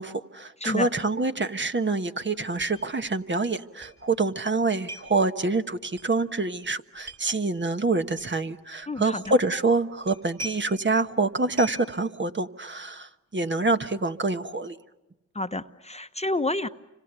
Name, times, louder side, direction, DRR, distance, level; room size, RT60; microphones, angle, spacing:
voice 1, 0.0-14.8, right 3 dB, 35° right, 8 dB, 1.3 m, -26 dB
sound 1, 2.6-2.8 3.1-3.2 3.8-4.0 4.9-5.2 6.0-6.1 7.0-7.2 8.2-8.3 9.2-9.5 10.0-10.8 11.6-11.9, right 1 dB, 50° right, 7.1 m, -40 dB
voice 2, 8.9-9.3 15.3-16.7, left 2 dB, 20° left, 10 dB, 1.0 m, -29 dB
29.5 x 26.0 x 6.9 m, 1.0 s
cardioid pair, 50°, 32 cm